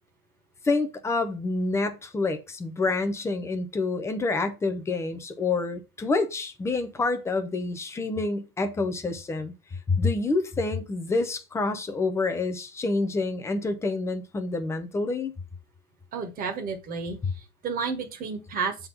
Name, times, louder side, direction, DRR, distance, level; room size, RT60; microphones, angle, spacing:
voice 1, 0.6-9.5 9.9-15.3, left 3 dB, 5° left, 0.7 m, -27 dB
voice 2, 16.1-18.9, right 5 dB, 20° right, 1.5 m, -32 dB
7.5 x 3.9 x 6.0 m
hypercardioid pair, 130°, 44 cm